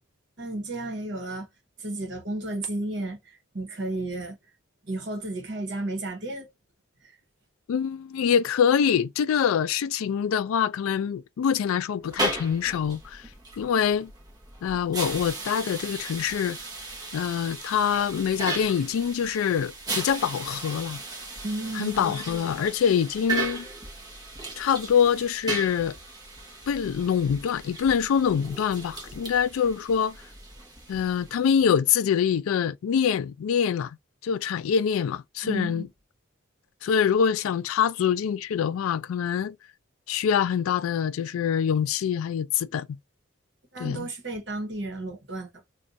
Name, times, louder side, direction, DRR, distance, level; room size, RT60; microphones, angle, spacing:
voice 1, 0.4-1.5 1.8-4.4 4.8-6.5 7.0-7.1 21.4-22.1 35.4-35.9 43.7-45.7, right 2 dB, 55° right, 1.1 m, -33 dB
voice 2, 7.7-13.3 13.6-14.1 14.6-16.6 17.1-21.0 21.7-23.7 24.6-26.0 26.7-30.2 30.9-34.0 34.2-35.9 36.8-39.5 40.1-42.9 43.8-44.1, left 7 dB, 85° left, 0.3 m, -25 dB
sound 1, 12.0-31.6, right 3 dB, 20° right, 0.8 m, -36 dB
2.5 x 2.3 x 4.0 m
head